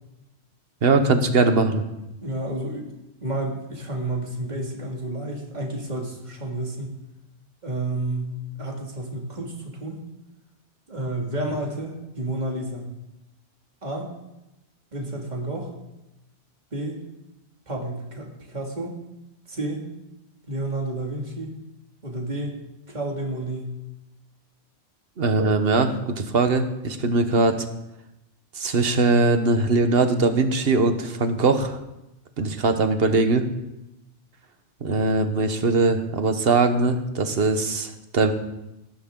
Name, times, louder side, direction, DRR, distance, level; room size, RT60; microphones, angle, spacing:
voice 1, 0.8-1.8 25.2-27.6 28.6-31.8 32.4-33.5 34.8-38.3, right 3 dB, 60° right, 8 dB, 1.4 m, -21 dB
voice 2, 2.2-2.9 3.2-7.0 7.6-10.0 10.9-12.9 13.8-14.1 14.9-15.7 16.7-17.0 17.7-18.9 19.5-19.8 20.5-21.5 22.0-22.5 22.9-23.8, right 1 dB, 40° right, -1 dB, 2.6 m, -30 dB
19.0 x 11.5 x 3.8 m, 0.93 s
omnidirectional pair, 1.1 m